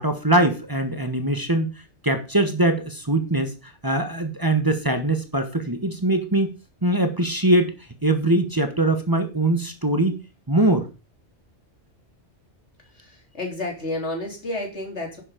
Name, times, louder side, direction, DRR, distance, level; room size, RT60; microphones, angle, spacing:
voice 1, 0.0-1.7 2.0-3.5 3.8-6.5 6.8-7.7 8.0-10.2 10.5-10.9, right 1 dB, 20° right, 6 dB, 1.4 m, -22 dB
voice 2, 12.9-15.2, left 2 dB, 80° left, 1 dB, 3.8 m, -31 dB
11.0 x 7.1 x 5.2 m, 0.30 s
omnidirectional pair, 1.2 m